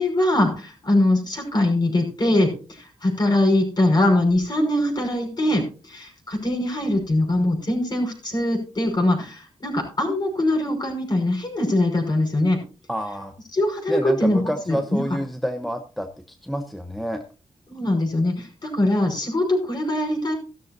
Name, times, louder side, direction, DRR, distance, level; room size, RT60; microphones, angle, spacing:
voice 1, 0.0-12.6 13.5-15.0 17.7-20.3, left 1 dB, 40° left, 2 dB, 5.5 m, -22 dB
voice 2, 12.9-13.3 13.9-17.2, equal, ahead, 5 dB, 1.0 m, -28 dB
15.0 x 13.0 x 2.7 m, 0.34 s
wide cardioid pair, 105°, 12 cm